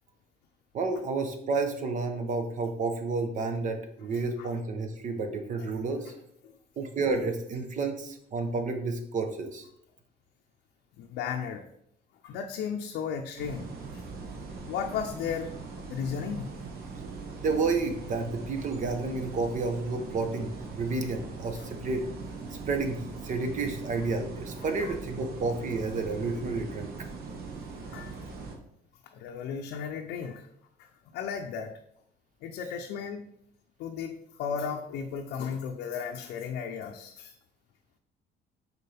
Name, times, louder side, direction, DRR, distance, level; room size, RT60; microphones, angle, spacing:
voice 1, 0.7-6.1 6.8-9.6 17.4-22.1 22.5-26.9, right 3 dB, 50° right, 6 dB, 1.0 m, -30 dB
voice 2, 11.0-11.7 12.2-14.0 14.7-16.5 21.5-21.7 24.6-25.0 27.8-28.2 29.0-30.5 30.8-31.7 32.4-33.3 33.8-37.3, left 7 dB, 80° left, 2 dB, 0.6 m, -35 dB
sound 1, 13.4-28.5, right 4 dB, 70° right, 1.2 m, -41 dB
6.8 x 4.4 x 3.4 m, 0.70 s
cardioid pair, 110°, 17 cm